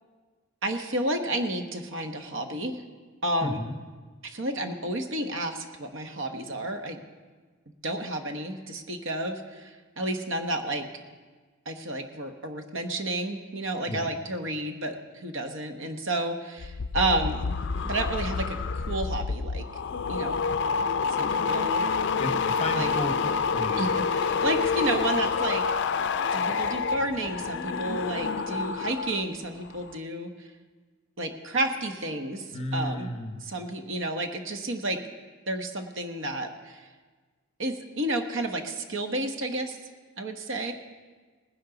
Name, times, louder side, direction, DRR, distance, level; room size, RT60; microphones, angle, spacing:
voice 1, 0.6-2.8 3.2-3.6 4.2-7.0 7.8-10.8 11.7-17.4 17.8-19.6 20.1-20.4 21.2-21.8 22.7-22.9 23.8-25.6 26.3-30.5 31.2-33.1 33.4-35.0 35.5-36.9 37.6-39.8 40.2-40.7, right 1 dB, 60° right, 6 dB, 1.1 m, -31 dB
voice 2, 3.4-3.8 13.9-14.1 22.2-23.9 32.5-33.4, left 1 dB, 30° left, 5 dB, 1.0 m, -33 dB
sound 1, 16.6-29.3 29.6-30.0, left 5 dB, 55° left, 0.4 m, -28 dB
19.0 x 10.5 x 3.9 m, 1.4 s
head